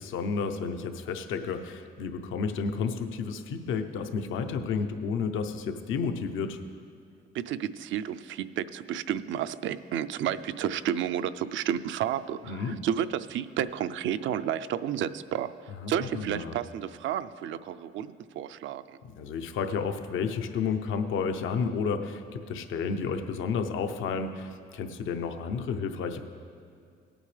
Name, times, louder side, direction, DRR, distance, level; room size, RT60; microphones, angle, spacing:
voice 1, 0.0-6.6 12.5-12.8 15.8-16.5 19.2-26.2, left 5 dB, 80° left, 7 dB, 0.7 m, -31 dB
voice 2, 7.3-19.0, right 10 dB, 75° right, 13 dB, 0.4 m, -31 dB
17.5 x 8.9 x 3.3 m, 2.2 s
cardioid pair, 90°, 20 cm